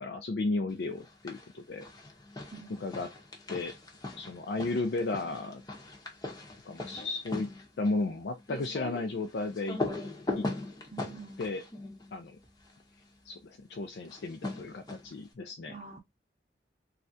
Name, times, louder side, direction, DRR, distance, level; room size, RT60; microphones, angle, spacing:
voice 1, 0.0-1.9 2.8-3.1 3.5-3.7 4.2-5.6 6.7-7.5 7.8-9.8 10.4-10.5 11.4-11.6 12.1-12.4 13.2-15.8, left 3 dB, 65° left, 0.4 m, -34 dB
sound 1, 1.0-1.5 1.8-12.8 14.0-15.3, left 2 dB, 20° left, 0.7 m, -40 dB
voice 2, 2.5-2.8 10.9-11.6 15.7-16.0, right 3 dB, 40° right, 0.7 m, -46 dB
3.2 x 2.4 x 2.6 m
head